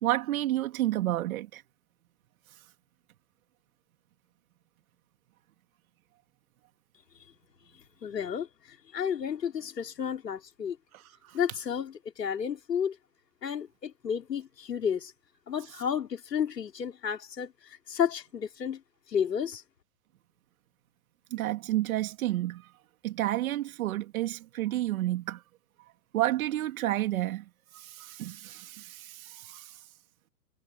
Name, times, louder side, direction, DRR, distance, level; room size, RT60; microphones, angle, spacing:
voice 1, 0.0-1.6 10.9-11.0 11.3-11.4 21.3-22.6 23.0-25.4 26.1-27.4 27.7-29.8, right 15 dB, 60° right, 2.7 m, -30 dB
voice 2, 8.0-8.5 8.9-10.8 11.3-13.0 13.4-15.1 15.5-18.8 19.1-19.6, left 8 dB, 90° left, 3.6 m, -31 dB
hypercardioid pair, 130°, 48 cm